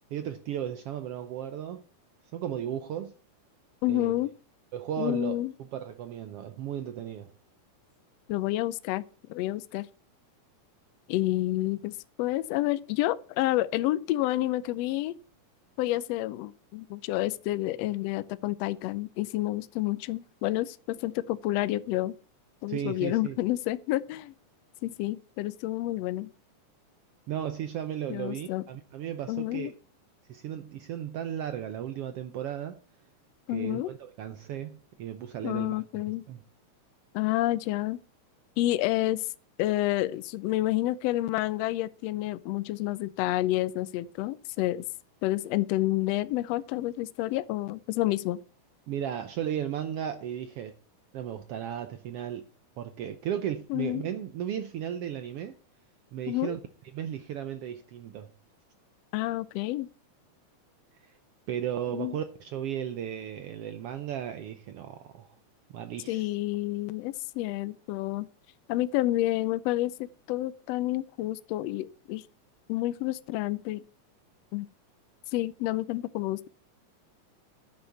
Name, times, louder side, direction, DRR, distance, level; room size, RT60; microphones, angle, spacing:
voice 1, 0.1-1.8 2.3-3.1 3.9-4.2 4.7-7.3 22.7-23.4 27.3-29.7 30.3-32.8 33.5-36.4 48.9-50.7 51.1-52.5 52.8-55.6 56.1-56.6 56.9-58.3 61.5-65.3 65.7-66.3, right 10 dB, 85° right, 1.3 m, -35 dB
voice 2, 3.8-4.3 5.0-5.5 8.3-9.0 9.3-9.9 11.1-15.1 15.8-22.1 22.6-24.3 24.8-26.3 28.1-28.6 29.3-29.7 33.5-33.9 35.4-36.3 37.1-38.0 38.6-39.3 39.6-44.8 45.2-48.4 53.7-54.0 56.3-56.6 59.1-59.9 61.9-62.2 66.1-68.3 68.7-72.2 72.7-73.8 74.5-74.7 75.3-76.5, left 16 dB, 85° left, 1.4 m, -29 dB
10.0 x 6.4 x 7.0 m
omnidirectional pair, 3.6 m